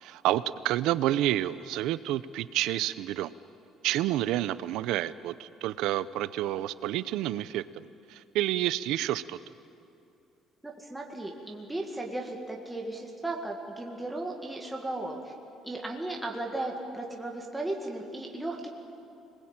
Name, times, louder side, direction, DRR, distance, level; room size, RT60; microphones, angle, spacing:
voice 1, 0.0-3.3 3.8-9.4, right 14 dB, 85° right, 15 dB, 0.8 m, -29 dB
voice 2, 10.6-15.3 15.6-18.7, right 2 dB, 5° right, -1 dB, 2.0 m, -36 dB
26.5 x 20.5 x 8.9 m, 2.7 s
cardioid pair, 165°, 0 cm